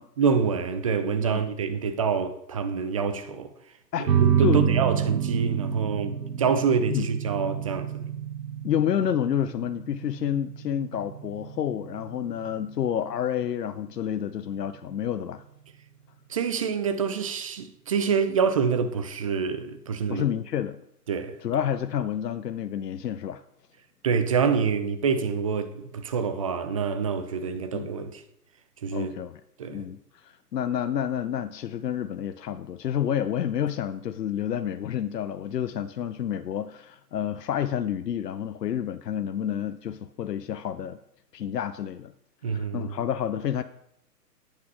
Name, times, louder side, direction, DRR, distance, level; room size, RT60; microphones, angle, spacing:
voice 1, 0.2-3.5 4.2-8.1 16.3-20.2 21.1-21.4 24.0-28.2 28.8-29.1 29.6-29.9 42.4-42.9, right 6 dB, 20° right, 0.5 m, -26 dB
voice 2, 3.9-4.7 6.9-7.1 8.6-15.4 20.1-20.8 21.4-23.4 27.7-27.9 28.9-29.4 29.7-41.0 41.3-42.1 42.5-43.6, left 9 dB, 75° left, 0.7 m, -29 dB
sound 1, 4.1-15.1, right 9 dB, 75° right, 1.6 m, -29 dB
9.3 x 8.7 x 6.1 m
hypercardioid pair, 130°, 49 cm